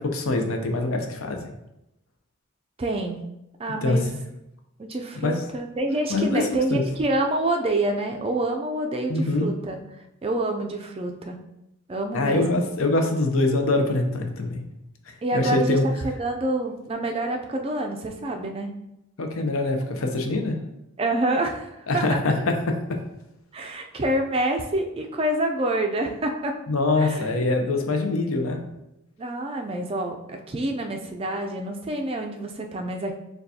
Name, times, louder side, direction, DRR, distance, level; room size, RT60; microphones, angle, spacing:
voice 1, 0.0-1.5 3.8-4.1 5.2-5.4 6.1-6.9 9.1-9.5 12.1-14.6 15.3-15.8 19.2-20.6 21.9-23.0 26.7-28.6, left 2 dB, 75° left, 4 dB, 0.6 m, -24 dB
voice 2, 2.8-3.2 3.6-4.1 4.8-9.8 10.2-11.4 11.9-12.6 15.2-18.7 21.0-22.2 23.5-26.6 27.0-27.3 29.2-33.1, right 1 dB, 25° right, 3 dB, 0.3 m, -27 dB
6.4 x 2.3 x 2.7 m, 0.87 s
head